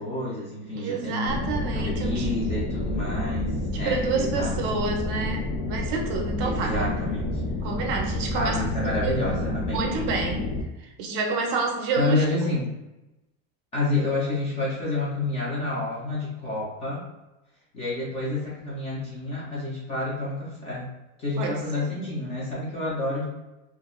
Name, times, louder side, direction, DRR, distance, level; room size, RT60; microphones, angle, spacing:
voice 1, 0.0-1.4 1.7-4.8 6.4-7.4 8.3-9.9 11.9-12.7 13.7-17.0 17.7-20.9 21.2-23.2, left 2 dB, 20° left, -7 dB, 0.3 m, -29 dB
voice 2, 0.8-2.3 3.7-6.9 7.6-9.2 9.7-10.5 10.8-12.5 21.4-21.9, right 4 dB, 45° right, 2 dB, 0.5 m, -29 dB
sound 1, 1.3-10.6, left 2 dB, 80° left, 0.6 m, -29 dB
2.4 x 2.2 x 2.9 m, 0.97 s
cardioid pair, 175°, 37 cm